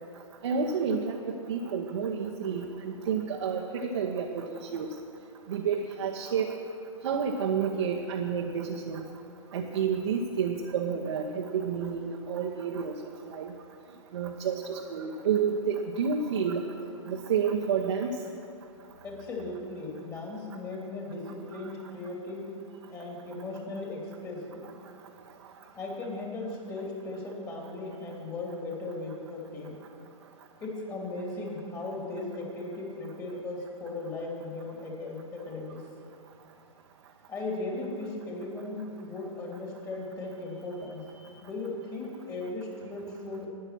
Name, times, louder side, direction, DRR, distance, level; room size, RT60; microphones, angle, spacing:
voice 1, 0.4-4.5 4.7-4.9 5.5-6.6 7.0-9.0 9.5-12.9 13.2-13.5 14.1-16.6 17.1-18.2, right 6 dB, 60° right, 0 dB, 1.0 m, -30 dB
voice 2, 19.0-22.5 22.9-24.7 25.7-29.8 30.6-35.9 37.3-41.0 41.4-43.5, left 2 dB, 20° left, -1 dB, 3.1 m, -37 dB
13.5 x 9.7 x 6.0 m, 2.7 s
figure-of-eight pair, 110°, 17 cm